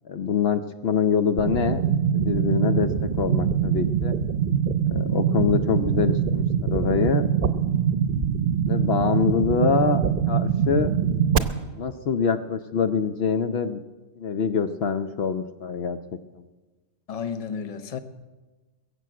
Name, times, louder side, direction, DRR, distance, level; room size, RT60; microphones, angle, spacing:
voice 1, 0.1-1.8 2.1-2.9 3.2-4.1 4.9-7.2 8.7-10.9 11.8-13.8 14.2-16.0 16.4-16.5, left 6 dB, 65° left, 0.9 m, -25 dB
sound 1, 1.4-11.4, right 8 dB, 55° right, 0.9 m, -23 dB
voice 2, 17.1-18.0, left 6 dB, 35° left, 0.8 m, -32 dB
21.5 x 7.8 x 7.6 m
omnidirectional pair, 1.2 m